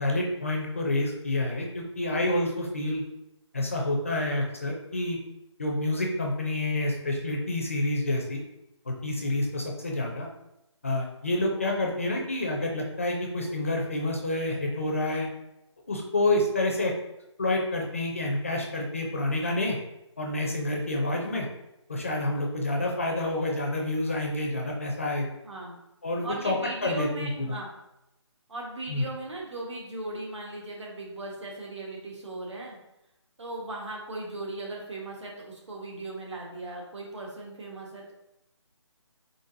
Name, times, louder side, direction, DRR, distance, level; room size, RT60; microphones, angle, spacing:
voice 1, 0.0-3.0 3.5-5.2 5.6-8.4 8.9-10.3 10.8-15.3 15.9-16.9 17.4-19.8 20.2-21.5 21.9-25.3 26.0-26.6 26.8-27.6 28.9-29.0, left 1 dB, 25° left, 0 dB, 0.4 m, -28 dB
voice 2, 25.4-25.8 26.2-27.7 28.5-32.8 33.4-38.1, right 2 dB, 70° right, -2 dB, 1.3 m, -38 dB
3.9 x 3.7 x 2.6 m, 0.87 s
figure-of-eight pair, 170°, 16 cm